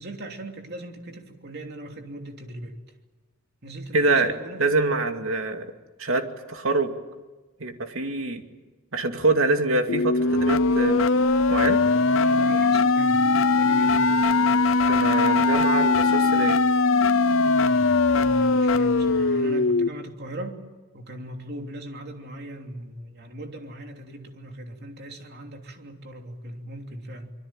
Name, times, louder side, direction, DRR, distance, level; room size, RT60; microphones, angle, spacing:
voice 1, 0.0-2.8 3.6-4.7 12.1-13.3 13.6-14.1 18.1-20.6 20.9-27.3, right 1 dB, 50° right, 4 dB, 3.1 m, -39 dB
voice 2, 3.9-4.3 4.6-5.7 6.0-6.9 7.6-8.4 8.9-11.1 11.5-11.8 14.9-16.6, right 3 dB, 80° right, 6 dB, 2.4 m, -25 dB
sound 1, 9.9-19.9, left 3 dB, 75° left, 0.8 m, -20 dB
25.5 x 23.0 x 9.0 m, 1.2 s
head